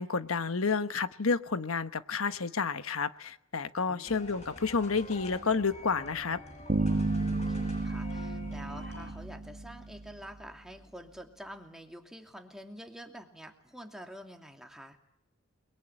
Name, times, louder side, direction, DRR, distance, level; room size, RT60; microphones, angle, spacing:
voice 1, 0.0-6.4, left 4 dB, 90° left, 1.2 m, -30 dB
sound 1, 4.0-9.1, left 2 dB, 35° left, 7.0 m, -46 dB
sound 2, 6.7-10.1, right 2 dB, 40° right, 1.4 m, -32 dB
voice 2, 7.2-15.0, equal, ahead, 2.7 m, -47 dB
29.5 x 22.5 x 8.9 m
head